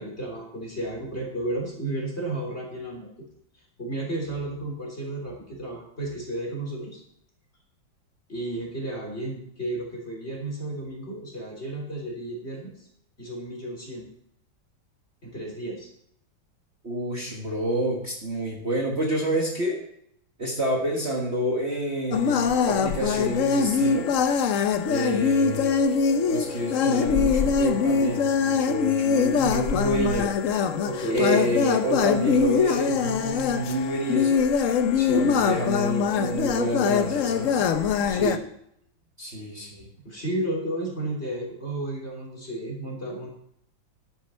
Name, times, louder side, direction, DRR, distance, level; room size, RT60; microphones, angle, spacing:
voice 1, 0.0-3.1 3.8-7.0 8.3-12.7 13.2-14.1 15.2-15.9 30.8-31.5 34.9-35.3 38.1-38.4 40.0-43.3, right 1 dB, 30° left, -2 dB, 3.8 m, -32 dB
voice 2, 16.8-19.8 20.4-24.1 24.9-25.9 26.3-30.3 31.1-34.4 35.1-37.6 39.2-39.9, right 1 dB, 35° right, -2 dB, 1.7 m, -28 dB
sound 1, 22.1-38.4, left 6 dB, 60° left, 0.8 m, -23 dB
11.5 x 9.5 x 4.4 m, 0.72 s
omnidirectional pair, 2.1 m